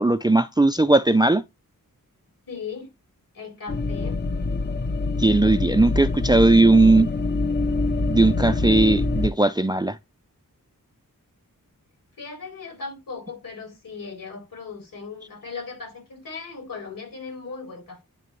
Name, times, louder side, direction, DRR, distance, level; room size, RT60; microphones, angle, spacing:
voice 1, 0.0-1.4 5.2-7.1 8.1-10.0, right 2 dB, 15° right, 0.4 m, -18 dB
voice 2, 2.5-2.9 3.3-4.2 12.2-18.0, left 5 dB, 70° left, 3.4 m, -37 dB
sound 1, 3.7-9.3, left 3 dB, 30° left, 0.6 m, -25 dB
9.2 x 3.3 x 3.0 m
wide cardioid pair, 70°, 34 cm